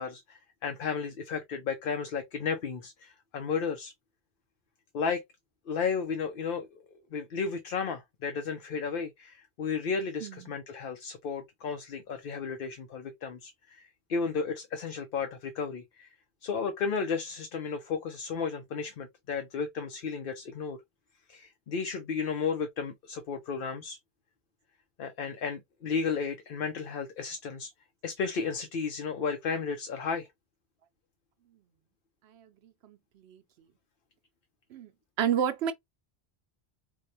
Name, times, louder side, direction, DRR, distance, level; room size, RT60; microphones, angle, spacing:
voice 1, 0.0-3.9 4.9-5.2 5.7-6.7 7.1-16.1 16.4-20.8 21.3-24.0 25.0-27.7 28.0-30.3, left 5 dB, 60° left, 0.7 m, -33 dB
voice 2, 10.2-10.5 32.2-33.4 34.7-34.9 35.2-35.7, right 9 dB, 75° right, 0.9 m, -31 dB
4.6 x 2.2 x 2.6 m
omnidirectional pair, 1.1 m